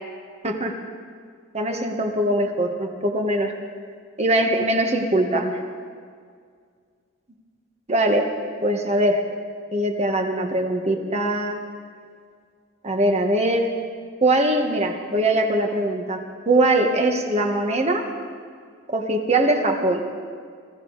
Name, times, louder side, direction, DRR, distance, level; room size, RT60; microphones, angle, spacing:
voice 1, 0.4-0.8 1.5-3.5 4.2-5.6 7.9-8.3 8.6-9.2 9.7-11.6 12.8-13.7 14.2-16.2 16.5-18.1 18.9-20.0, right 1 dB, 35° right, 4 dB, 1.4 m, -21 dB
21.5 x 15.0 x 4.1 m, 2.1 s
head